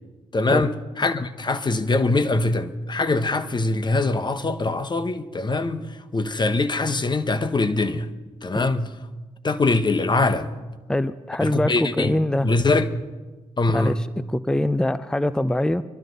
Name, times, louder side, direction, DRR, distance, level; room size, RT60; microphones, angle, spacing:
voice 1, 0.3-5.9 6.1-8.1 8.4-8.9 9.4-10.5 11.4-12.9 13.6-14.0, left 3 dB, 35° left, 1.1 m, -23 dB
voice 2, 10.9-12.5 13.7-15.8, left 1 dB, 5° left, 0.6 m, -23 dB
24.5 x 12.5 x 4.0 m
supercardioid pair, 55°, 13 cm